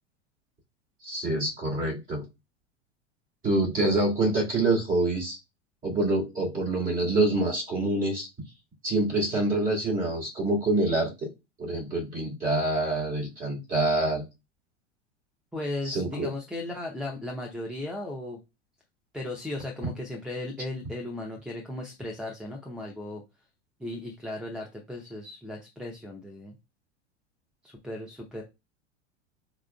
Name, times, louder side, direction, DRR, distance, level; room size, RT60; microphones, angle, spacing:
voice 1, 1.0-2.2 3.4-5.4 5.8-8.3 8.8-11.1 11.6-14.2 15.9-16.3, right 2 dB, 25° right, -2 dB, 2.0 m, -26 dB
voice 2, 15.5-18.4 19.1-23.2 23.8-26.5 27.6-28.4, left 1 dB, ahead, -3 dB, 0.6 m, -36 dB
4.6 x 3.7 x 2.2 m, 0.24 s
figure-of-eight pair, 85°, 35 cm